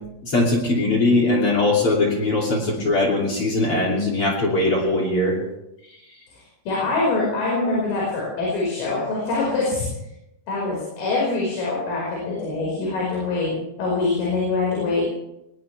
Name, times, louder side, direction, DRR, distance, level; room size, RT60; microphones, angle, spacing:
voice 1, 0.2-5.4, left 2 dB, 35° left, 0 dB, 2.9 m, -20 dB
voice 2, 6.7-9.8 10.5-13.5 13.8-15.0, left 3 dB, 80° left, -4 dB, 7.7 m, -24 dB
21.5 x 20.0 x 3.4 m, 0.86 s
omnidirectional pair, 5.6 m